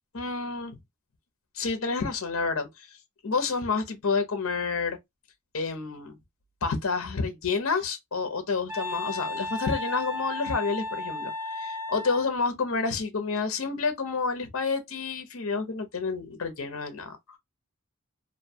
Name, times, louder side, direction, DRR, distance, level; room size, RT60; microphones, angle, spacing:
voice 1, 0.1-0.8 1.5-2.9 3.2-5.0 5.5-6.1 6.6-17.2, left 4 dB, 70° left, 0.8 m, -29 dB
Wind instrument woodwind instrument, 8.7-12.3, left 2 dB, 15° right, 1.2 m, -34 dB
2.6 x 2.2 x 2.7 m
head